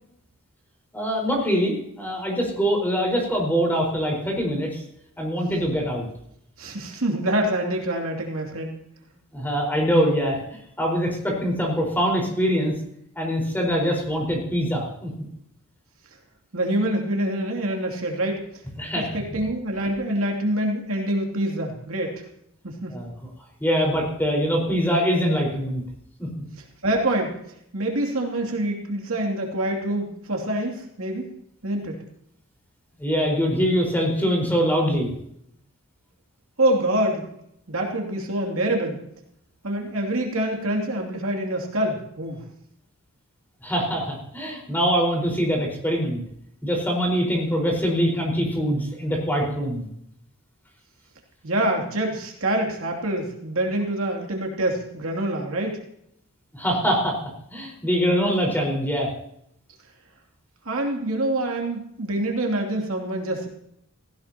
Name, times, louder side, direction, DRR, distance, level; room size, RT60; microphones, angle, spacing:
voice 1, 0.9-4.8 5.2-6.1 9.3-10.4 10.8-12.7 13.1-15.1 18.8-19.1 22.9-23.1 23.6-25.8 26.2-26.3 33.0-35.1 43.6-46.2 46.6-49.9 56.5-57.2 57.5-59.1, equal, 10° left, -1 dB, 4.8 m, -23 dB
voice 2, 6.6-8.7 16.5-18.4 18.9-22.2 22.6-23.0 26.6-27.4 27.7-31.3 31.6-32.0 36.6-37.3 37.7-39.0 39.6-42.4 51.4-55.8 60.6-63.5, right 1 dB, 70° right, 1 dB, 2.8 m, -26 dB
17.5 x 16.5 x 3.0 m, 0.73 s
head